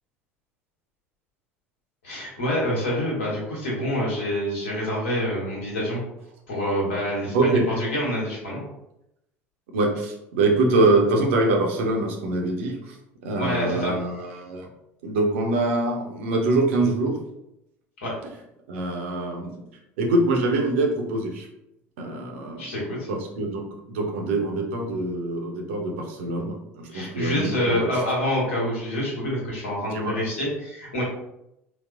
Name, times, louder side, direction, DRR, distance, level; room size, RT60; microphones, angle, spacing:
voice 1, 2.0-6.0 6.5-8.6 13.4-13.9 18.0-18.1 22.6-23.1 26.9-31.0, equal, 70° left, -4 dB, 1.2 m, -27 dB
voice 2, 7.3-7.8 9.7-13.0 13.2-14.7 15.0-17.2 18.7-19.6 20.0-21.5 22.0-22.8 23.1-28.0 29.9-30.2, right 2 dB, 65° right, 1 dB, 0.6 m, -24 dB
4.0 x 2.1 x 2.4 m, 0.85 s
figure-of-eight pair, 65°, 7 cm